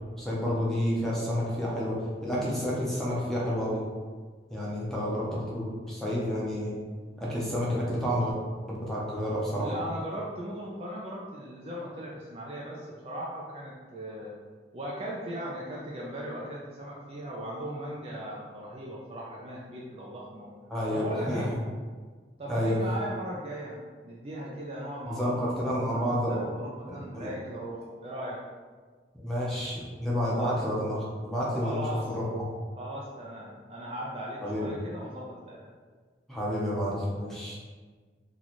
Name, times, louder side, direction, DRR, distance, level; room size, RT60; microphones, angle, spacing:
voice 1, 0.2-3.8 4.5-6.7 7.2-8.4 8.7-9.7 20.7-21.6 22.5-22.8 25.0-26.4 26.9-27.3 29.1-31.8 32.1-32.4 34.4-34.7 36.3-37.6, equal, ahead, -6 dB, 0.7 m, -30 dB
voice 2, 9.5-14.4 14.7-20.5 20.9-21.5 22.4-28.4 30.3-30.6 31.6-32.1 32.8-35.7, right 1 dB, 30° right, -4 dB, 0.4 m, -38 dB
3.0 x 2.4 x 4.0 m, 1.5 s
head